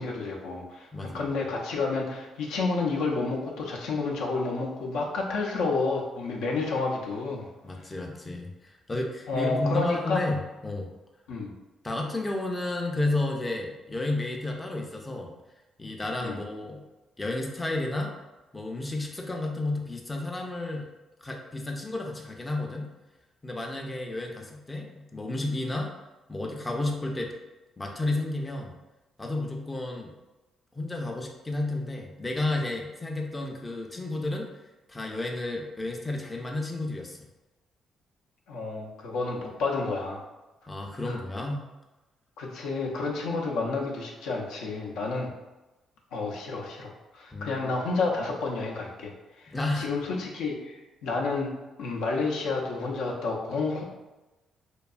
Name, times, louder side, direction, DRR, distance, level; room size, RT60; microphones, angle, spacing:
voice 1, 0.0-7.5 7.8-7.9 9.3-10.2 11.3-11.5 16.2-16.4 38.5-40.2 41.0-41.2 42.4-45.3 46.1-49.1 49.4-51.5 51.8-53.8, left 3 dB, 90° left, -1 dB, 0.4 m, -30 dB
voice 2, 0.9-1.3 7.6-10.9 11.8-15.3 15.8-16.8 17.2-18.2 18.5-20.9 21.2-22.9 23.4-25.9 26.3-27.3 27.8-28.7 29.2-30.1 30.7-34.5 34.9-37.2 40.7-41.6 47.3-47.8 49.5-49.9, left 2 dB, 20° left, 2 dB, 0.4 m, -32 dB
2.7 x 2.2 x 2.3 m, 1.1 s
cardioid pair, 90°, 0 cm